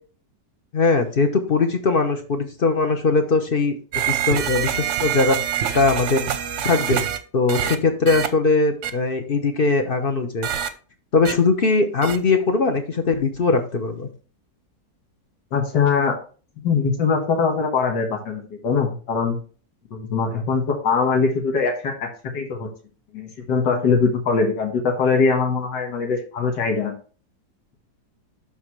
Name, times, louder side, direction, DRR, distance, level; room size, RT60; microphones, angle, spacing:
voice 1, 0.7-5.4 5.7-6.2 6.6-7.0 7.3-10.5 11.1-14.1, left 3 dB, 40° left, 6 dB, 0.9 m, -20 dB
sound 1, 3.9-7.2 7.5-7.8 8.1-8.3 8.8-8.9 10.4-10.7 11.2-11.3 12.0-12.2, right 9 dB, 55° right, 0.9 m, -25 dB
voice 2, 15.5-16.2 16.6-19.4 19.9-22.7 23.1-26.9, left 5 dB, 85° left, 2 dB, 2.0 m, -22 dB
12.0 x 4.2 x 3.1 m, 0.38 s
omnidirectional pair, 1.8 m